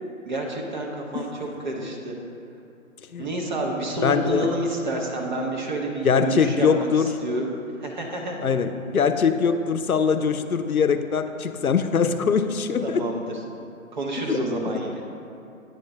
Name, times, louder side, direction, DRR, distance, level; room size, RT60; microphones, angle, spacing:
voice 1, 0.3-2.1 3.2-6.9 7.2-7.5 7.8-8.5 12.8-13.4 13.9-15.0, right 2 dB, 35° right, 0 dB, 0.8 m, -29 dB
voice 2, 4.0-4.5 6.0-7.2 8.4-13.1 14.2-14.5 14.7-14.8, left 6 dB, 90° left, 9 dB, 0.6 m, -22 dB
9.0 x 3.7 x 5.4 m, 2.7 s
figure-of-eight pair, 140°, 42 cm